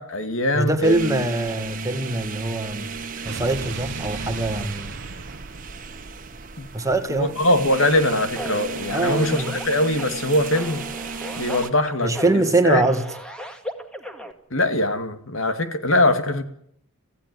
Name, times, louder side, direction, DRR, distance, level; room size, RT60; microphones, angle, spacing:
voice 1, 0.0-1.2 6.6-6.7 7.1-10.8 11.4-12.8 14.5-16.4, left 1 dB, 70° left, 8 dB, 2.3 m, -22 dB
voice 2, 0.5-2.9 3.2-4.9 6.7-7.4 8.9-9.5 12.0-13.0, right 2 dB, 15° right, 7 dB, 1.9 m, -23 dB
sound 1, 0.8-11.7, right 5 dB, 40° right, 1.7 m, -35 dB
Explosion, 3.3-7.6, right 3 dB, 55° right, 0.9 m, -37 dB
sound 2, 7.8-14.3, equal, 5° left, 2.0 m, -37 dB
26.5 x 15.5 x 9.7 m, 0.70 s
head